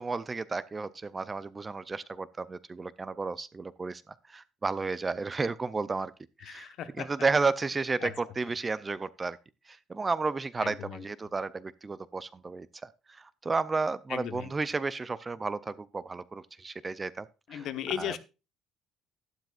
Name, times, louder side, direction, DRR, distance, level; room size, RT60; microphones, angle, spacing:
voice 1, 0.0-6.1 6.4-9.4 9.7-17.7 18.0-18.2, right 4 dB, 15° right, 0.4 m, -32 dB
voice 2, 6.4-7.1 8.0-8.1 10.6-11.0 14.1-14.5 17.5-18.2, left 10 dB, 55° left, 1.1 m, -36 dB
12.0 x 12.0 x 2.4 m
cardioid pair, 165°, 0 cm